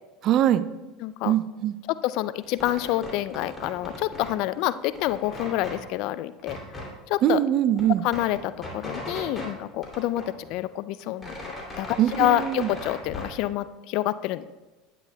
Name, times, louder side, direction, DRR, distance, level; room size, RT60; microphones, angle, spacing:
voice 1, 0.2-0.7 1.2-1.7 7.2-8.0 12.0-12.7, right 11 dB, 50° right, 13 dB, 0.4 m, -22 dB
voice 2, 1.0-1.3 1.9-6.6 7.1-7.4 8.0-11.3 11.8-11.9 12.2-14.5, left 15 dB, 60° left, 15 dB, 0.3 m, -27 dB
sound 1, 2.4-4.4 4.7-5.8 6.4-6.9 7.3-7.4 7.6-9.5 9.8-10.7 11.0-13.4, left 1 dB, 20° left, 2.7 m, -38 dB
10.5 x 8.8 x 2.2 m, 1.2 s
hypercardioid pair, 80°, 0 cm